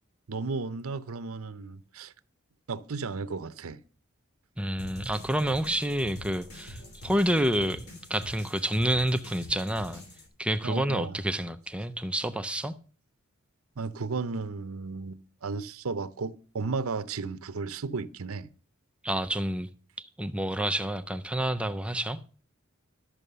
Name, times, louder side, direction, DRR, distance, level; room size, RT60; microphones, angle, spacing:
voice 1, 0.3-2.1 2.7-3.8 10.6-11.2 13.8-18.5, right 4 dB, 70° right, 0.7 m, -34 dB
voice 2, 4.6-10.0 10.4-12.7 19.0-19.7 20.0-22.2, right 1 dB, 5° right, 0.5 m, -28 dB
sound 1, 4.8-10.3, equal, 75° left, 3.1 m, -45 dB
12.5 x 6.2 x 6.7 m
head